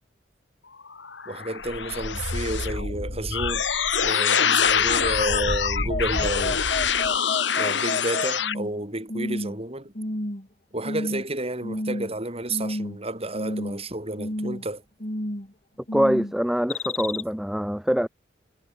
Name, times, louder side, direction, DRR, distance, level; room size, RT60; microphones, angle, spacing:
sound 1, 0.9-8.5, left 6 dB, 70° left, 2.4 m, -25 dB
voice 1, 1.3-3.6 4.0-6.7 7.6-9.9 10.7-14.8, right 1 dB, 30° right, 7.6 m, -31 dB
sound 2, 3.8-8.8 9.1-9.6 9.9-10.5 10.8-11.3 11.6-12.2 12.5-13.0 13.3-13.8 14.2-14.6 15.0-15.5 15.9-16.3 16.7-17.2, left 2 dB, 40° left, 4.6 m, -31 dB
voice 2, 15.9-18.1, equal, ahead, 0.6 m, -24 dB
head